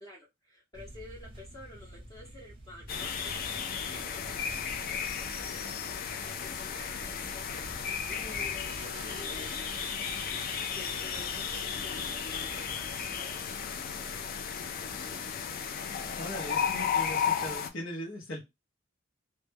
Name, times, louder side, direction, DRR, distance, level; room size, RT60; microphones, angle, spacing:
voice 1, 0.0-5.8 6.2-10.0 10.3-12.1 12.4-14.5 16.1-16.5, left 1 dB, 25° left, -6 dB, 0.7 m, -51 dB
sound 1, 0.7-13.3, right 1 dB, 30° right, 0.6 m, -50 dB
sound 2, 2.9-17.7, left 7 dB, 50° left, 0.3 m, -34 dB
sound 3, 8.7-14.3, right 5 dB, 90° right, 0.4 m, -52 dB
voice 2, 16.2-18.4, equal, 85° left, -2 dB, 0.7 m, -39 dB
2.1 x 2.1 x 3.3 m, 0.21 s
head